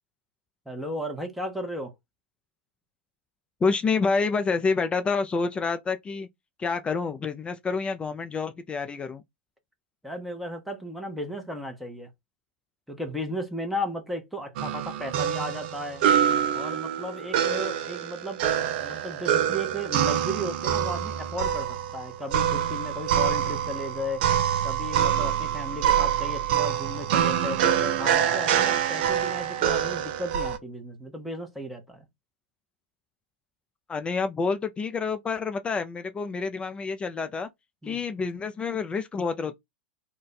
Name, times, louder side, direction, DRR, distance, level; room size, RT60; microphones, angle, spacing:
voice 1, 0.7-1.9 10.0-12.1 12.9-16.0 16.5-18.4 18.8-24.2 24.6-32.1 37.8-38.0, equal, ahead, 0.9 m, -35 dB
voice 2, 3.6-6.3 6.6-9.2 33.9-37.5 37.8-39.6, left 4 dB, 15° left, 0.4 m, -28 dB
sound 1, 14.6-30.6, right 9 dB, 55° right, 0.5 m, -26 dB
2.5 x 2.2 x 3.9 m
hypercardioid pair, 110°, 6 cm